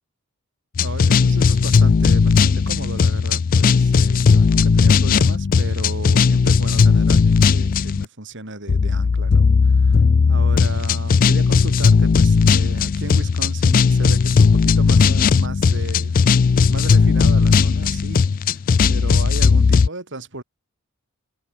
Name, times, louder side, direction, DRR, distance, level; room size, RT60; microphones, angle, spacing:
sound 1, 0.7-8.0 8.7-19.9, left 5 dB, 40° left, 0.3 m, -16 dB
voice 1, 0.8-10.0 10.3-16.2 16.7-18.6 18.9-20.4, right 2 dB, 60° right, 5.5 m, -34 dB
head